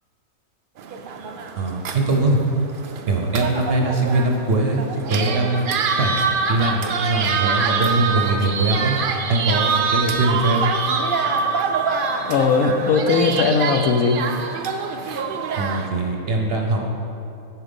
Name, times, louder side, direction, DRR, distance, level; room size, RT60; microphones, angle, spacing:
sound 1, 0.8-15.9, right 5 dB, 70° right, 0.5 m, -25 dB
voice 1, 1.6-2.4 3.1-5.7 6.0-6.2 6.5-9.0 9.3-10.7 15.6-16.8, right 2 dB, 50° right, 1 dB, 0.8 m, -21 dB
voice 2, 12.3-14.3, left 4 dB, 75° left, 6 dB, 1.0 m, -18 dB
10.0 x 4.6 x 5.3 m, 2.9 s
omnidirectional pair, 1.5 m